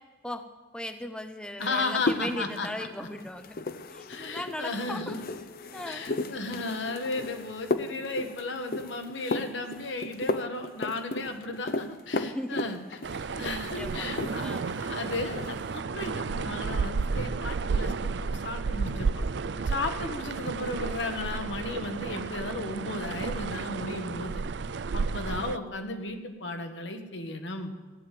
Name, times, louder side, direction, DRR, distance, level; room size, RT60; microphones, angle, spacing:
voice 1, 0.7-3.6 3.9-5.2 5.7-6.0 12.2-12.8 13.1-14.1 14.4-14.7, left 1 dB, 5° left, 8 dB, 0.5 m, -38 dB
voice 2, 1.6-3.1 4.1-5.2 5.9-13.0 13.3-19.2 19.7-24.4 24.9-27.8, left 2 dB, 75° left, 6 dB, 1.4 m, -35 dB
sound 1, 1.6-14.7 14.9-15.6, left 2 dB, 50° left, 0.6 m, -35 dB
sound 2, 13.0-25.6, right 4 dB, 65° right, 0.4 m, -32 dB
15.0 x 9.3 x 7.5 m, 1.3 s
head